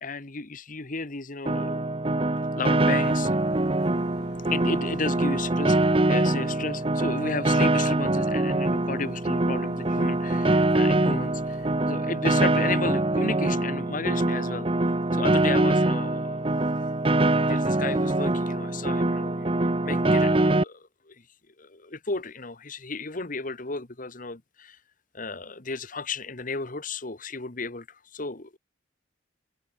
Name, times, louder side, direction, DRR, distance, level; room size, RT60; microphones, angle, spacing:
voice 1, 0.0-2.2 2.6-3.4 4.5-14.7 15.1-16.6 17.5-19.5 19.8-21.1 21.6-24.8 25.1-28.6, left 3 dB, 45° left, 1.6 m, -34 dB
Piano, 1.5-20.6, right 2 dB, 30° right, 1.1 m, -24 dB
sound 1, 3.0-11.9, left 1 dB, 60° left, 7.6 m, -52 dB
head